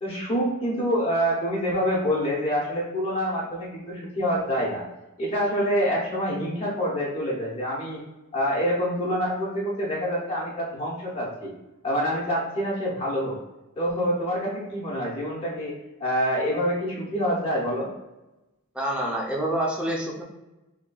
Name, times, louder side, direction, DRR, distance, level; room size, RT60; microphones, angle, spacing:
voice 1, 0.0-4.8 5.2-8.0 8.3-11.5 11.8-13.4 13.8-15.7 16.0-17.9, equal, 25° left, -6 dB, 0.9 m, -26 dB
voice 2, 18.7-20.2, right 1 dB, 5° right, -3 dB, 0.7 m, -27 dB
4.1 x 3.0 x 2.3 m, 1.0 s
head